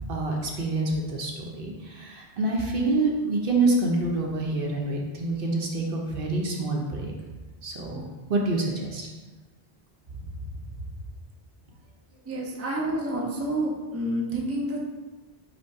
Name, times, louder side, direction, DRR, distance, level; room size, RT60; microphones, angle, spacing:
voice 1, 0.1-7.1 7.6-8.0 8.3-9.1 10.8-10.9, right 2 dB, 65° right, -1 dB, 0.9 m, -27 dB
voice 2, 12.3-14.8, right 1 dB, 20° right, -2 dB, 0.5 m, -29 dB
5.1 x 2.3 x 4.6 m, 1.2 s
omnidirectional pair, 1.0 m